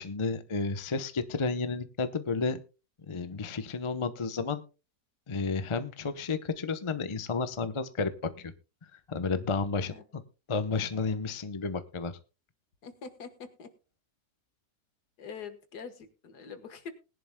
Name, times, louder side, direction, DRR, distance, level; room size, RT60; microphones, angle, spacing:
voice 1, 0.0-2.6 3.1-4.6 5.3-8.5 8.8-10.2 10.5-12.1, left 4 dB, 35° left, 10 dB, 0.5 m, -32 dB
voice 2, 12.8-13.7 15.2-16.9, left 6 dB, 65° left, 9 dB, 2.0 m, -44 dB
20.5 x 11.0 x 2.2 m, 0.31 s
omnidirectional pair, 1.9 m